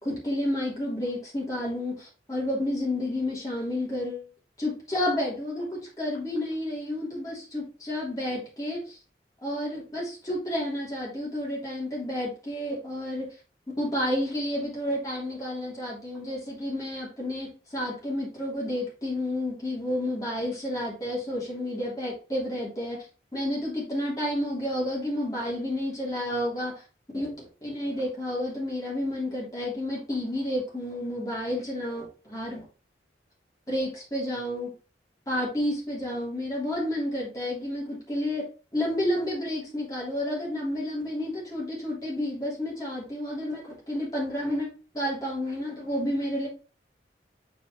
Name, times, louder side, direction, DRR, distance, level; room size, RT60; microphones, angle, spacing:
voice 1, 0.0-4.3 4.6-9.0 9.4-13.3 13.8-23.0 23.3-26.7 27.1-27.3 27.6-32.6 33.7-34.7 35.3-38.5 38.7-46.5, left 1 dB, 20° left, -5 dB, 3.2 m, -30 dB
6.7 x 4.6 x 3.3 m, 0.35 s
head